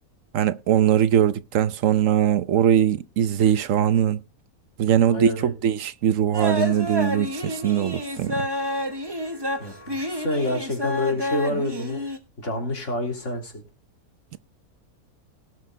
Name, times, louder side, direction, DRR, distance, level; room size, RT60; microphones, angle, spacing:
voice 1, 0.3-4.2 4.8-8.5, right 10 dB, 65° right, 1.1 m, -21 dB
voice 2, 5.0-5.5 9.6-12.0 12.4-13.6, left 1 dB, 50° left, 3.6 m, -28 dB
sound 1, 6.3-12.2, equal, 15° right, 1.2 m, -29 dB
18.5 x 6.4 x 3.9 m
omnidirectional pair, 1.6 m